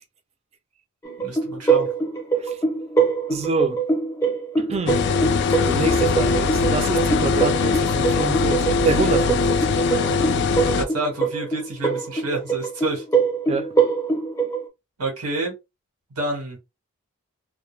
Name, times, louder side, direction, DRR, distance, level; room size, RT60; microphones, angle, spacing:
sound 1, 1.0-14.7, right 5 dB, 15° left, 0.6 m, -24 dB
voice 1, 1.2-1.9 10.6-13.0 15.0-15.5 16.2-16.6, right 2 dB, 90° right, 1.2 m, -28 dB
voice 2, 3.3-3.8 4.6-5.0 5.6-10.2 13.5-13.7, right 3 dB, 30° right, 0.4 m, -27 dB
sound 2, 4.9-10.8, left 4 dB, 50° left, 0.3 m, -21 dB
2.2 x 2.2 x 3.1 m
head